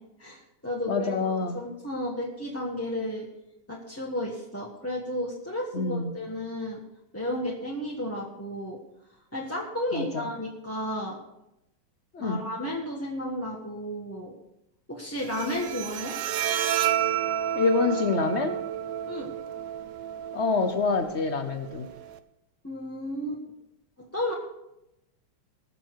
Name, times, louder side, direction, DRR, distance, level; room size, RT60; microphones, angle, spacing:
voice 1, 0.2-3.3 3.7-6.8 7.1-8.8 9.3-11.2 12.2-14.3 14.9-16.2 19.1-19.3 22.6-23.4 24.1-24.3, left 1 dB, 10° left, -3 dB, 1.2 m, -33 dB
voice 2, 0.9-1.6 5.7-6.1 9.9-10.3 12.1-12.4 17.5-18.6 20.3-21.9, left 4 dB, 45° left, 8 dB, 0.9 m, -26 dB
Bowed string instrument, 15.2-22.2, right 11 dB, 70° right, 1.2 m, -31 dB
20.5 x 6.8 x 4.7 m, 0.87 s
omnidirectional pair, 2.3 m